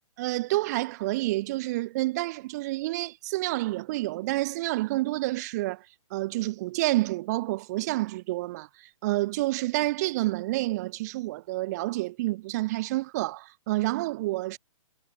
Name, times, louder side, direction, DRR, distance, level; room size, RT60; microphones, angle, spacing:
voice 1, 0.2-5.8 6.1-14.6, right 19 dB, 30° right, 7.6 m, -29 dB
hypercardioid pair, 165°, 17 cm